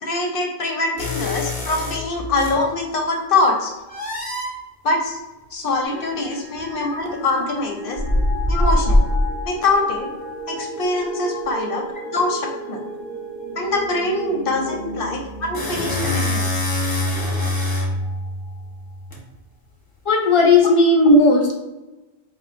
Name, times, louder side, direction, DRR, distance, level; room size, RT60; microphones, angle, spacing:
voice 1, 0.0-3.7 4.8-5.2 5.5-8.0 8.5-9.0 9.5-10.1 10.5-11.8 12.1-12.8 13.6-16.6, left 2 dB, 65° left, 2 dB, 0.7 m, -23 dB
sound 1, 1.0-2.6 3.9-4.5 6.5-6.7 8.0-9.5 15.0-19.2, left 1 dB, 25° left, 0.8 m, -23 dB
sound 2, 5.8-18.9, equal, ahead, 1.0 m, -35 dB
voice 2, 20.1-21.5, left 2 dB, 50° left, 0 dB, 0.4 m, -15 dB
4.3 x 2.5 x 2.4 m, 1.1 s
omnidirectional pair, 1.1 m